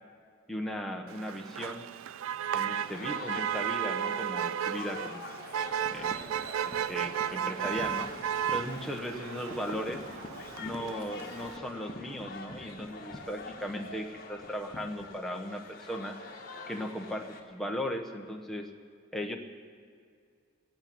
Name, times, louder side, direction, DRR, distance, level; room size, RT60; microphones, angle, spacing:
voice 1, 0.5-1.8 2.5-5.2 5.9-6.2 6.6-8.1 8.5-10.0 10.6-16.2 16.7-18.7 19.1-19.3, equal, ahead, 1 dB, 1.0 m, -37 dB
Motor vehicle (road), 1.1-11.6, right 9 dB, 80° right, 0.3 m, -34 dB
sound 1, 2.7-17.4, left 3 dB, 45° left, 1.8 m, -45 dB
sound 2, 5.5-15.0, left 1 dB, 20° left, 1.1 m, -49 dB
17.5 x 8.9 x 8.7 m, 2.2 s
head